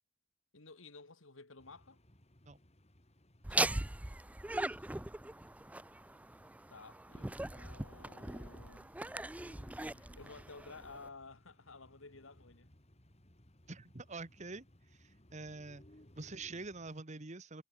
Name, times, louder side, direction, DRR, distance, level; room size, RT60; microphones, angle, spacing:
voice 1, 0.5-2.0 4.5-4.9 6.7-8.9 9.8-12.7, left 3 dB, 80° left, 2.3 m, -54 dB
sound 1, 1.6-17.0, left 1 dB, 30° left, 3.1 m, -64 dB
Laughter, 3.4-11.1, right 2 dB, 5° right, 0.4 m, -40 dB
voice 2, 13.7-14.6 14.9-15.8 16.2-17.6, right 3 dB, 35° right, 1.2 m, -46 dB
head